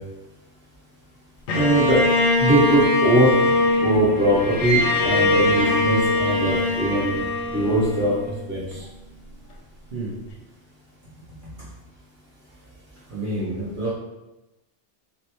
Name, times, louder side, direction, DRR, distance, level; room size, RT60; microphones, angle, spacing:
Bowed string instrument, 1.5-8.7, left 2 dB, 80° left, 0.9 m, -22 dB
voice 1, 1.5-2.0 2.4-3.4 3.8-7.2 7.5-8.8, right 1 dB, 10° right, -6 dB, 0.8 m, -21 dB
voice 2, 13.1-13.9, right 1 dB, 55° right, -7 dB, 0.7 m, -29 dB
3.1 x 2.6 x 2.8 m, 1.0 s
omnidirectional pair, 1.2 m